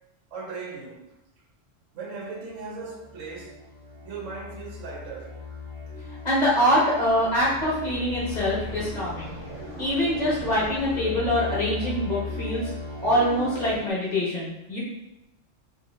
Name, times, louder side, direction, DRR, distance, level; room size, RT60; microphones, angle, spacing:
voice 1, 0.3-1.1 1.9-3.7 4.0-5.4, right 4 dB, 80° right, 0.9 m, -38 dB
sound 1, 2.4-13.9, left 3 dB, 15° right, 0.7 m, -37 dB
voice 2, 6.2-9.3 9.8-12.7 13.0-14.8, equal, 40° left, 0.9 m, -24 dB
2.6 x 2.5 x 2.7 m
omnidirectional pair, 1.3 m